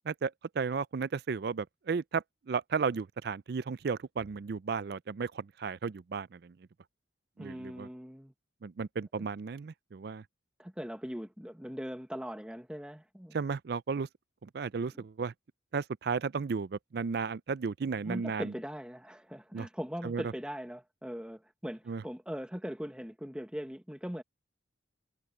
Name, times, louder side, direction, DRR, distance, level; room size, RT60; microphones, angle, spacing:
voice 1, 0.1-6.5 7.4-7.9 8.6-10.2 13.3-14.1 14.4-15.3 15.7-18.5 19.5-19.7 20.0-20.2 21.9-22.0, right 5 dB, 55° right, 0.4 m, -34 dB
voice 2, 7.4-8.3 9.2-9.3 10.6-13.4 14.9-15.0 17.9-24.2, equal, 5° right, 1.2 m, -40 dB
head